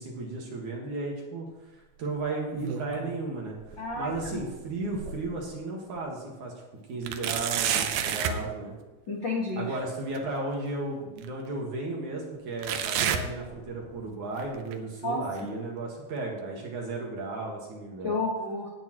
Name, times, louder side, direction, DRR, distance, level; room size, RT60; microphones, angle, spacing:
voice 1, 0.0-3.6 4.0-6.5 6.9-8.7 9.6-18.2, right 2 dB, 55° right, -1 dB, 2.7 m, -34 dB
sound 1, 2.3-3.2 3.6-5.5 6.0-6.1 7.0-8.4 10.1-10.2 11.2-11.3 12.6-14.0 14.4-14.7 15.4-15.5 16.4-16.5, right 8 dB, 80° right, 2.0 m, -31 dB
voice 2, 3.8-4.5 9.1-9.6 15.0-15.2 18.0-18.7, left 2 dB, 50° left, -3 dB, 1.4 m, -31 dB
17.0 x 9.8 x 3.1 m, 1.1 s
omnidirectional pair, 4.9 m